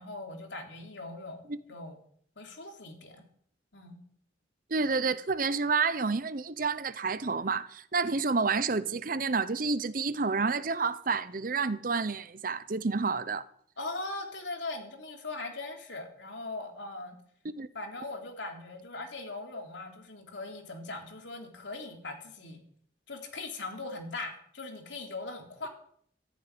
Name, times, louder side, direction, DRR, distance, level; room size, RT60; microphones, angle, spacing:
voice 1, 0.0-1.4 1.7-2.0 2.4-3.2 3.7-4.0 13.8-17.2 17.7-22.6 23.1-25.7, left 2 dB, 75° left, 3.6 m, -40 dB
voice 2, 4.7-13.4 17.4-17.7, right 4 dB, 45° right, 0.7 m, -29 dB
14.5 x 9.1 x 9.8 m
head